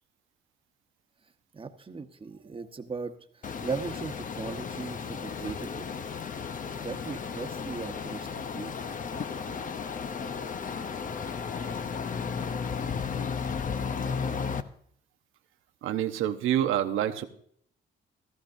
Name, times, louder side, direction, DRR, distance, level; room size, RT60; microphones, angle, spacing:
voice 1, 1.5-5.9 6.7-8.7, right 5 dB, 25° right, 6 dB, 1.1 m, -38 dB
sound 1, 3.4-14.6, left 6 dB, 40° left, 0.8 m, -34 dB
Trumpet, 6.1-13.1, left 5 dB, 80° left, 1.6 m, -52 dB
voice 2, 15.8-17.3, right 11 dB, 90° right, 8 dB, 0.9 m, -27 dB
15.5 x 14.0 x 2.6 m, 0.63 s
cardioid pair, 90°, 20 cm